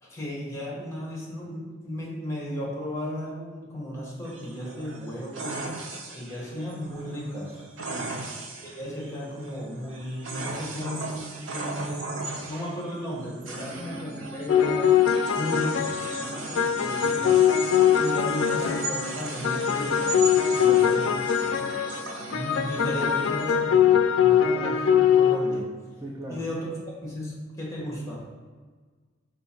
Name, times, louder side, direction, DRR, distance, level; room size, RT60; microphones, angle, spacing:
voice 1, 0.0-5.7 6.1-7.6 8.6-14.9 15.4-15.9 17.0-17.5 18.0-20.2 20.8-21.1 22.3-25.7 26.3-26.7 27.0-28.2, equal, 15° left, -4 dB, 1.1 m, -34 dB
sound 1, 4.2-23.5, right 2 dB, 80° right, 0.7 m, -37 dB
voice 2, 7.9-8.3 13.6-13.9 16.2-17.4 20.5-20.9 26.0-26.4, right 1 dB, 15° right, -4 dB, 0.4 m, -40 dB
sound 2, 14.5-19.2 19.4-25.6, left 8 dB, 80° left, 0.3 m, -22 dB
4.6 x 2.5 x 4.2 m, 1.5 s
head